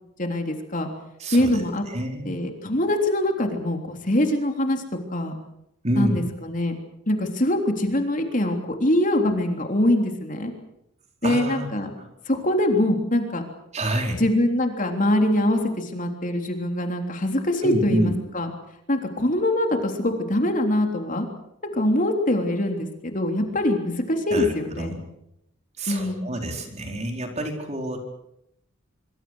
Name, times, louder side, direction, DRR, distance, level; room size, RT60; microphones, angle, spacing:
voice 1, 0.2-0.9 1.3-1.8 2.3-4.8 5.1-5.4 6.0-6.7 7.1-10.5 11.2-11.9 12.3-13.4 14.1-18.5 18.9-21.3 21.7-25.0 25.9-26.3, left 1 dB, 40° left, 4 dB, 3.5 m, -23 dB
voice 2, 1.2-1.6 1.9-2.3 5.8-6.2 11.2-11.7 12.0-12.1 13.7-14.2 17.6-18.1 24.3-25.0 25.8-28.0, right 1 dB, 35° right, 3 dB, 4.4 m, -27 dB
25.5 x 25.0 x 6.4 m, 0.80 s
head